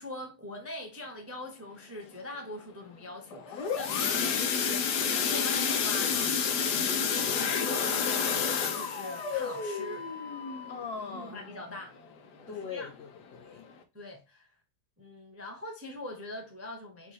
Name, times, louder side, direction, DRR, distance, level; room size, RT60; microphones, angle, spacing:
voice 1, 0.0-6.6 6.8-8.4 8.7-10.1 11.1-11.9 12.5-12.9 13.9-14.5 15.0-17.1, left 1 dB, 20° right, 0.4 m, -42 dB
sound 1, 3.3-12.0 12.4-12.7 12.9-13.0 13.5-13.6, left 6 dB, 90° left, 1.4 m, -30 dB
Wind instrument woodwind instrument, 7.1-10.9, left 5 dB, 40° left, 1.1 m, -43 dB
voice 2, 10.7-11.4 12.5-13.7, left 5 dB, 65° left, 0.6 m, -41 dB
4.5 x 2.9 x 4.1 m
omnidirectional pair, 1.7 m